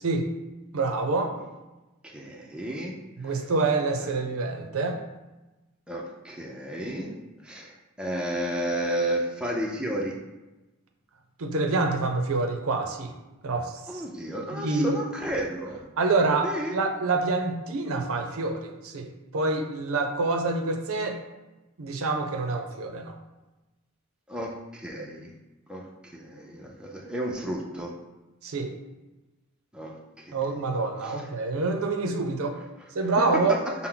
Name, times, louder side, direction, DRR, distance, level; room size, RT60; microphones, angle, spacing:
voice 1, 0.7-1.3 3.2-5.0 11.4-13.1 13.4-13.7 14.5-15.0 16.0-21.2 21.8-23.2 28.4-28.7 30.3-32.6 32.9-33.6, right 3 dB, 70° right, 5 dB, 0.5 m, -26 dB
voice 2, 2.0-3.4 4.0-4.2 5.9-10.2 13.9-15.9 16.4-16.8 24.3-25.3 25.7-28.0 29.7-30.7 31.0-31.3 33.2-33.6, right 1 dB, 5° right, -2 dB, 0.4 m, -33 dB
5.7 x 2.1 x 3.7 m, 1.1 s
head